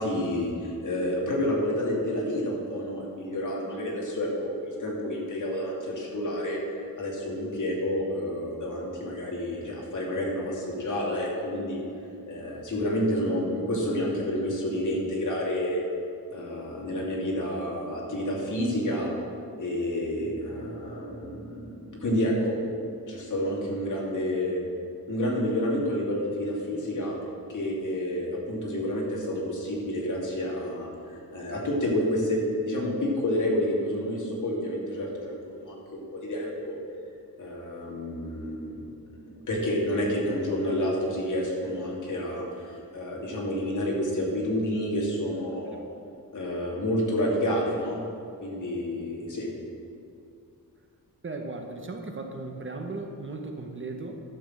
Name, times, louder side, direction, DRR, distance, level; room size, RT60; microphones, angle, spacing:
voice 1, 0.0-11.8 12.3-15.8 16.3-19.1 19.6-22.6 23.1-24.6 25.1-27.1 27.5-36.8 37.4-38.8 39.5-45.8 46.3-48.0 48.4-49.5, left 1 dB, 60° left, -3 dB, 2.7 m, -29 dB
voice 2, 51.2-54.1, right 3 dB, 35° right, 3 dB, 1.0 m, -36 dB
12.0 x 6.2 x 7.5 m, 2.5 s
wide cardioid pair, 145°, 36 cm